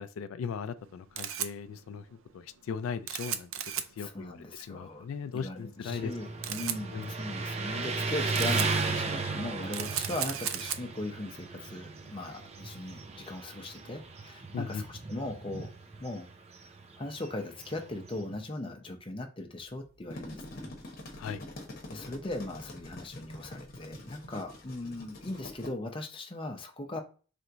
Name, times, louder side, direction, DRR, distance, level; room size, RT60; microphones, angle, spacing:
voice 1, 0.0-3.5 4.0-4.4 4.7-6.1 6.5-6.6 6.9-7.1 14.5-14.8 21.2-21.4, left 6 dB, 85° left, 0.3 m, -38 dB
Camera, 0.8-14.1, right 10 dB, 85° right, 0.5 m, -39 dB
voice 2, 4.0-5.1 5.3-15.7 16.0-16.3 17.0-20.8 21.1-21.3 21.9-27.0, left 2 dB, 25° left, 0.6 m, -39 dB
Motorcycle, 5.8-18.5, right 3 dB, 30° right, 0.5 m, -36 dB
sound 1, 19.9-25.7, left 1 dB, 50° left, 1.1 m, -45 dB
3.4 x 3.1 x 3.8 m
head